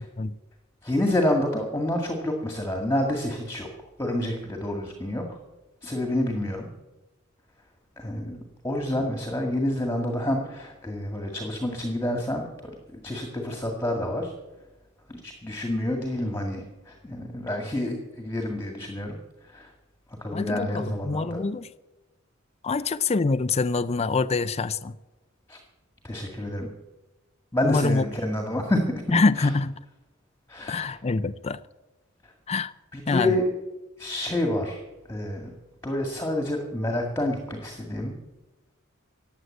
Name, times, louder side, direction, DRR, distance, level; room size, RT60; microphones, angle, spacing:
voice 1, 0.8-3.7 4.0-5.3 5.8-6.7 8.0-8.4 8.6-14.3 15.1-19.2 19.4-19.7 20.2-21.4 25.5-25.6 26.0-26.7 27.5-28.8 29.4-29.5 30.5-31.0 32.9-33.4 34.0-34.8 35.1-35.5 35.8-38.1, left 1 dB, 15° left, 2.0 m, -28 dB
voice 2, 20.3-21.7 22.6-24.9 27.6-28.0 29.1-29.7 30.7-31.6 32.5-32.7 33.1-33.3, left 3 dB, 30° left, 0.5 m, -25 dB
16.0 x 9.8 x 7.8 m
head